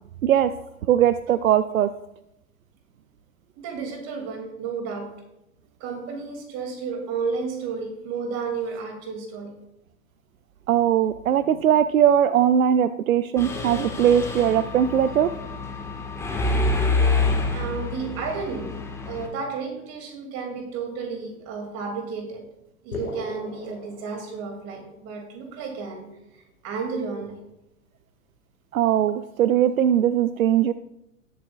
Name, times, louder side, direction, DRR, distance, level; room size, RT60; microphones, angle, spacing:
voice 1, 0.9-1.9 10.7-15.3 28.7-30.7, right 10 dB, 75° right, 13 dB, 0.5 m, -20 dB
voice 2, 3.6-5.1 5.8-9.5 17.5-18.7 19.1-22.4 22.8-26.1 26.6-27.3, right 5 dB, 35° right, 4 dB, 2.4 m, -32 dB
Mechanisms, 13.4-19.3, left 3 dB, 5° left, 1.4 m, -27 dB
sound 1, 22.9-24.9, left 3 dB, 90° left, 1.9 m, -37 dB
18.5 x 7.4 x 2.3 m, 0.86 s
figure-of-eight pair, 95°, 42 cm